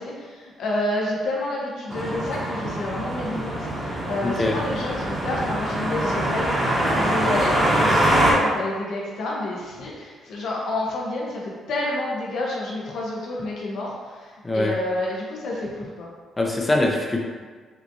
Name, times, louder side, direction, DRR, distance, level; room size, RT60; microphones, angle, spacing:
voice 1, 0.0-16.1, left 2 dB, 75° left, -4 dB, 1.1 m, -29 dB
sound 1, 1.9-8.3, right 1 dB, 20° right, 1.2 m, -23 dB
voice 2, 4.2-4.6 14.4-14.7 16.4-17.2, left 2 dB, 20° left, 0 dB, 0.7 m, -22 dB
6.1 x 2.5 x 2.8 m, 1.5 s
cardioid pair, 90°, 0 cm